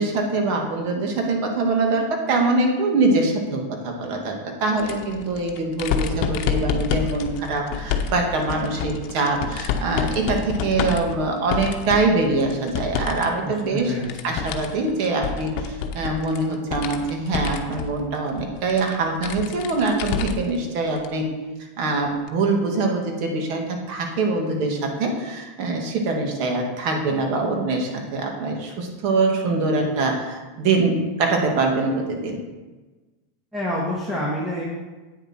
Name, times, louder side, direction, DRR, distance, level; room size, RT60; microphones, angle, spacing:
voice 1, 0.0-13.9 14.2-21.3 21.8-32.4, right 3 dB, 55° right, 2 dB, 2.2 m, -23 dB
sound 1, 4.8-13.2 13.6-20.6 21.0-21.1 22.3-22.4, left 6 dB, 55° left, 1.0 m, -28 dB
voice 2, 13.4-14.1 33.5-34.6, left 1 dB, 10° right, -6 dB, 2.0 m, -27 dB
9.0 x 7.2 x 4.6 m, 1.2 s
hypercardioid pair, 115°, 0 cm